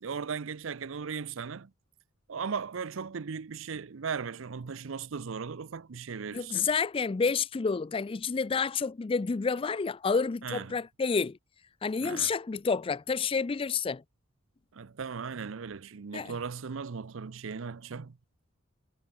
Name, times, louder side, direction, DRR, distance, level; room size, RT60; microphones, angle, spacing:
voice 1, 0.0-1.7 2.3-6.7 10.4-10.8 12.0-12.3 14.7-18.2, right 5 dB, 70° right, 0.6 m, -37 dB
voice 2, 6.3-11.4 11.8-14.0 16.1-16.3, left 5 dB, 25° left, 0.4 m, -29 dB
head